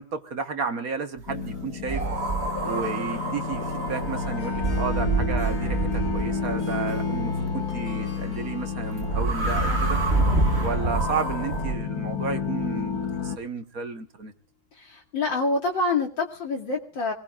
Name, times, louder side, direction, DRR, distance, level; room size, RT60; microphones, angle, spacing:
voice 1, 0.0-2.1 2.6-10.0 10.6-14.3, right 5 dB, 55° right, 8 dB, 1.6 m, -32 dB
sound 1, 1.3-13.4, left 5 dB, 60° left, 1.8 m, -30 dB
Harp, 1.9-13.3, left 2 dB, 45° left, 5.3 m, -45 dB
sound 2, 1.9-6.6 9.0-11.7, right 3 dB, 35° right, 2.0 m, -27 dB
voice 2, 14.7-17.1, left 3 dB, 80° left, 0 dB, 3.2 m, -27 dB
25.5 x 20.5 x 2.5 m, 0.36 s
omnidirectional pair, 2.0 m